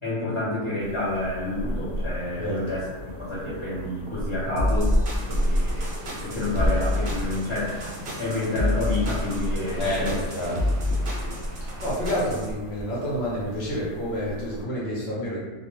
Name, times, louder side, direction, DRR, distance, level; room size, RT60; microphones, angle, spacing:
voice 1, 0.0-5.9 6.2-7.8 8.2-10.2 10.5-10.6 11.2-11.4, left 2 dB, 35° left, -11 dB, 0.4 m, -29 dB
sound 1, 0.8-14.6, equal, 85° left, 1.0 m, -32 dB
voice 2, 2.4-2.7 9.8-10.6 11.6-15.4, equal, 55° left, -6 dB, 0.9 m, -29 dB
sound 2, 4.6-12.5, left 1 dB, 55° right, 0.6 m, -28 dB
sound 3, 5.2-12.0, right 1 dB, 90° right, 1.0 m, -42 dB
2.3 x 2.1 x 3.0 m, 1.2 s
omnidirectional pair, 1.5 m